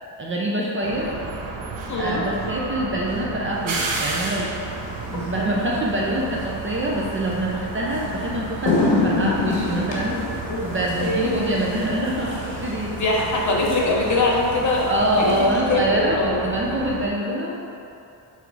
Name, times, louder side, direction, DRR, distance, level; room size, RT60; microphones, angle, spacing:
voice 1, 0.2-1.1 2.0-4.5 5.1-10.2 10.6-12.9 14.9-17.6, right 1 dB, 30° right, -3 dB, 0.5 m, -25 dB
sound 1, 0.8-17.1, right 3 dB, 75° right, 1.0 m, -33 dB
voice 2, 1.9-2.2 5.1-5.3 10.5-11.6 12.9-15.3 15.7-16.4, left 2 dB, 40° left, -3 dB, 1.0 m, -23 dB
sound 2, 4.9-5.2 7.3-7.4 7.9-8.1 8.4-15.5, left 3 dB, 70° left, 1.4 m, -28 dB
6.1 x 4.1 x 4.7 m, 2.8 s
wide cardioid pair, 170°, 46 cm